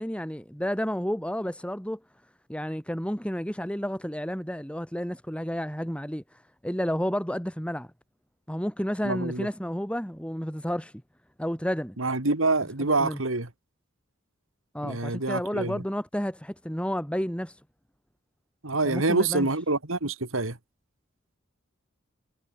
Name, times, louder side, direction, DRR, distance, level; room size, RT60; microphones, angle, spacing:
voice 1, 0.0-2.0 2.5-7.9 8.5-10.9 11.4-12.0 13.0-13.2 14.7-17.6 18.8-19.5, equal, 5° left, 5.5 m, -31 dB
voice 2, 9.0-9.5 12.0-13.5 14.8-15.8 18.6-20.6, right 3 dB, 80° right, 2.7 m, -26 dB
head